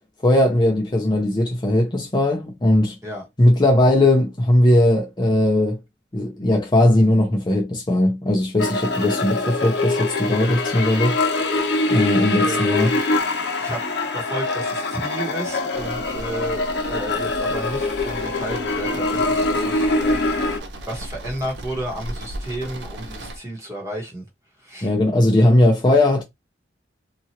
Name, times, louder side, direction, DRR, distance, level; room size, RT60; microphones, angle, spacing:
voice 1, 0.2-3.0 3.4-5.8 6.1-11.2 11.9-12.9 24.8-26.2, left 1 dB, 25° left, 0.6 m, -18 dB
sound 1, 8.6-20.6, left 2 dB, 65° left, 0.7 m, -23 dB
voice 2, 12.4-13.1 13.6-13.8 14.1-20.2 20.9-24.2 24.6-24.9, right 1 dB, 15° right, 1.1 m, -32 dB
sound 2, 15.7-23.4, right 1 dB, 70° right, 0.5 m, -36 dB
2.8 x 2.4 x 2.8 m
head